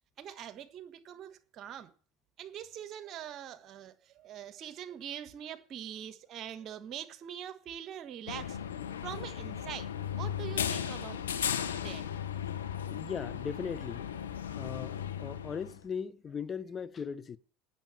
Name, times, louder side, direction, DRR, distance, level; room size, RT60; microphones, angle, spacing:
voice 1, 0.2-1.9 2.4-8.6 9.0-11.4 11.7-12.0, right 10 dB, 50° right, 1.4 m, -43 dB
sound 1, 8.3-15.8, left 9 dB, 85° left, 0.8 m, -36 dB
voice 2, 12.9-14.1 14.6-17.4, left 6 dB, 35° left, 0.6 m, -38 dB
9.1 x 7.0 x 9.0 m
hypercardioid pair, 75°, 0 cm